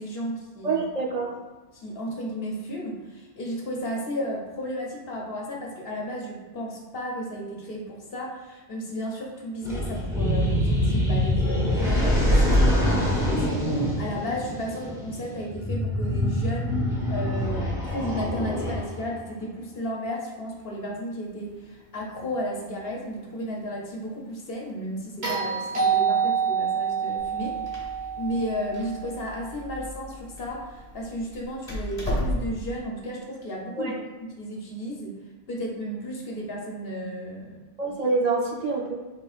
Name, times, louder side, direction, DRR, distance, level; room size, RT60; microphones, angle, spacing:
voice 1, 0.0-0.8 1.7-16.8 17.1-27.8 28.2-34.0 34.4-35.2 35.5-37.6, equal, 60° left, -1 dB, 1.0 m, -33 dB
voice 2, 0.6-1.3 33.8-34.0 37.8-38.9, right 3 dB, 45° right, -1 dB, 0.7 m, -26 dB
sound 1, 9.6-19.2, equal, 5° right, 1.3 m, -24 dB
sound 2, 25.2-29.5 31.7-31.8, right 7 dB, 70° right, 1.5 m, -27 dB
Door, 27.2-32.8, left 1 dB, 35° left, 1.4 m, -34 dB
5.4 x 4.1 x 2.4 m, 1.2 s
omnidirectional pair, 1.1 m